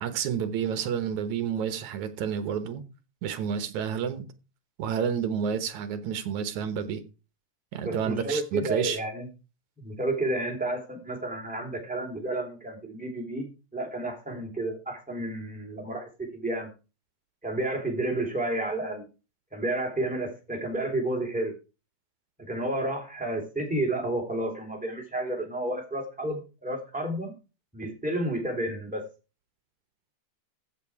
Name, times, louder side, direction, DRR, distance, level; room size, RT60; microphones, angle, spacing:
voice 1, 0.0-2.8 3.2-4.3 4.8-7.0 7.7-9.0, right 7 dB, 65° right, 2.3 m, -30 dB
voice 2, 7.8-9.3 9.8-16.7 17.4-19.0 19.5-21.5 22.4-27.3 27.7-29.1, right 1 dB, ahead, 2.9 m, -31 dB
14.5 x 7.0 x 4.7 m
omnidirectional pair, 3.8 m